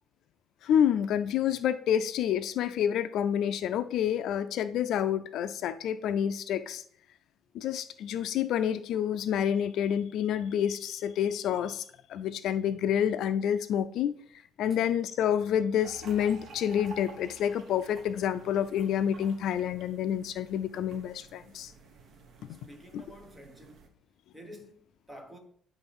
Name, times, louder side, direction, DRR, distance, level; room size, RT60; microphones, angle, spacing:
voice 1, 0.6-6.8 7.5-11.8 12.1-14.1 14.6-21.7 22.5-22.6 22.9-23.0, left 9 dB, 65° left, 0.4 m, -28 dB
sound 1, 15.8-23.9, right 4 dB, 50° right, 1.2 m, -51 dB
voice 2, 22.5-23.9 24.3-25.4, equal, 10° right, 1.3 m, -49 dB
9.9 x 3.8 x 5.3 m
cardioid pair, 165°, 0 cm